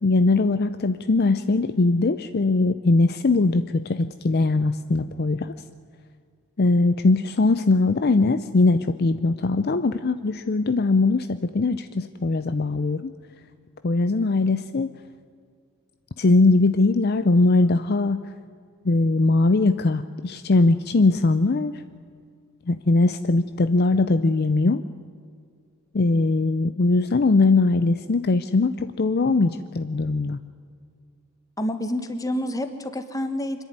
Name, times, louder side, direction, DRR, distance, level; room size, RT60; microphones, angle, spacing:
voice 1, 0.0-5.5 6.6-13.1 13.8-14.9 16.2-18.2 18.8-21.8 22.7-24.8 25.9-30.4, left 3 dB, 45° left, 11 dB, 0.5 m, -21 dB
voice 2, 31.6-33.6, left 1 dB, 15° left, 9 dB, 1.3 m, -28 dB
25.5 x 11.0 x 9.5 m, 2.2 s
head